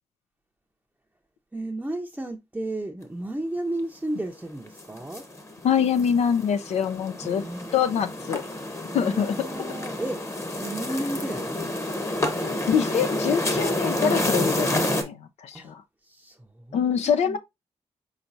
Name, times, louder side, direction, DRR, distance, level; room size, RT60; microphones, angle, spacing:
voice 1, 1.5-5.2 7.2-7.7 8.9-10.2 10.6-11.7 15.5-15.7 16.0-17.4, right 1 dB, 10° right, 0.6 m, -33 dB
sound 1, 4.7-15.0, left 1 dB, 25° left, 1.0 m, -29 dB
voice 2, 5.6-7.4 7.7-8.4 8.9-9.5 10.9-11.0 12.7-15.8 16.7-17.4, left 7 dB, 80° left, 0.4 m, -25 dB
4.4 x 4.1 x 2.6 m
cardioid pair, 70°, 11 cm